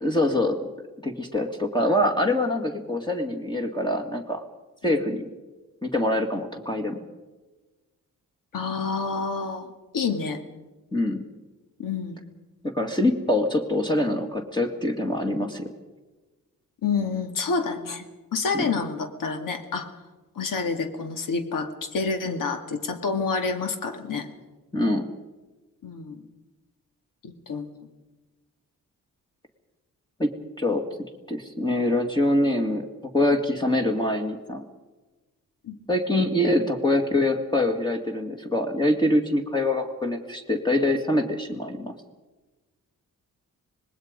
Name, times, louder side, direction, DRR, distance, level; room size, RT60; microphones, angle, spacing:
voice 1, 0.0-0.6 1.0-4.4 4.8-5.3 5.8-7.0 10.9-11.2 12.6-15.7 18.5-18.7 24.7-25.1 30.2-30.3 30.6-30.8 31.3-32.9 33.1-34.6 35.9-41.9, left 1 dB, 15° left, 3 dB, 2.0 m, -24 dB
voice 2, 8.5-10.4 11.8-12.2 16.8-18.0 18.3-19.9 20.4-24.3 25.8-26.2 27.2-27.9 35.6-35.8, left 4 dB, 75° left, 7 dB, 2.3 m, -28 dB
25.5 x 20.0 x 5.2 m, 1.2 s
cardioid pair, 100°, 33 cm